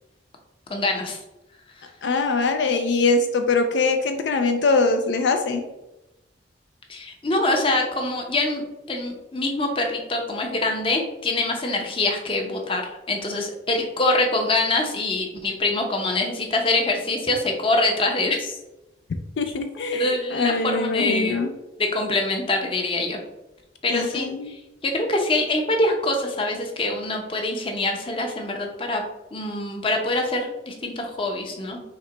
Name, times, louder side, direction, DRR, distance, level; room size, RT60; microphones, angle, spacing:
voice 1, 0.7-1.2 6.9-8.6 8.9-18.6 19.9-21.4 21.8-23.2 23.8-29.0 29.3-31.8, left 2 dB, 30° left, 2 dB, 0.7 m, -24 dB
voice 2, 2.0-5.6 19.4-21.5 23.9-24.5, left 3 dB, 75° left, 6 dB, 0.4 m, -22 dB
5.8 x 2.2 x 3.8 m, 0.97 s
head